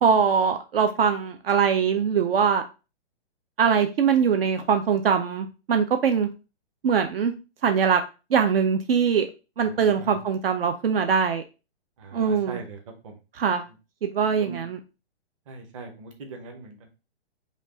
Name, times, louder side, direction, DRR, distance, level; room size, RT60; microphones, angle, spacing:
voice 1, 0.0-2.6 3.6-6.3 6.8-7.3 7.6-8.0 8.3-9.3 9.6-11.4 12.1-12.6 13.3-13.6 14.0-14.8, right 6 dB, 65° right, 7 dB, 0.6 m, -22 dB
voice 2, 9.6-10.2 12.0-12.8 13.0-13.1 14.4-14.6 15.5-16.9, right 4 dB, 30° right, 3 dB, 0.9 m, -40 dB
5.2 x 2.4 x 3.6 m, 0.31 s
hypercardioid pair, 170°, 32 cm